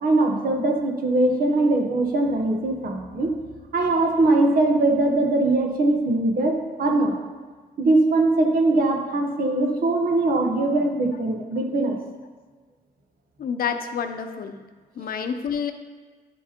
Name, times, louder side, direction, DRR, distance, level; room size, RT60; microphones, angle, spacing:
voice 1, 0.0-3.3 3.7-7.2 7.8-12.0, right 2 dB, 75° right, 2 dB, 1.0 m, -21 dB
voice 2, 13.4-14.6 15.0-15.7, left 7 dB, 70° left, 7 dB, 0.6 m, -28 dB
11.0 x 4.9 x 2.9 m, 1.4 s
cardioid pair, 105°, 15 cm